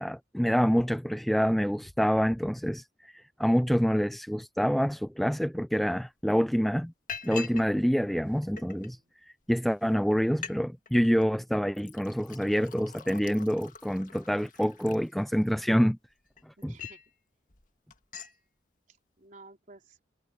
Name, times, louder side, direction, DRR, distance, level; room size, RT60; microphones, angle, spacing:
voice 1, 0.0-6.9 7.2-9.0 9.5-16.0 16.4-16.8, equal, ahead, 0.4 m, -27 dB
Liquid, 5.9-6.0 6.4-6.6 7.1-7.7 8.0-8.9 9.6-9.7 9.9-10.0 10.3-10.6 10.9-11.3 11.7-15.6 16.1-17.1 17.5-17.7 17.9-18.4, left 7 dB, 45° left, 1.8 m, -44 dB
voice 2, 8.5-9.1 16.6-17.0 19.2-20.0, right 2 dB, 45° right, 4.1 m, -52 dB
head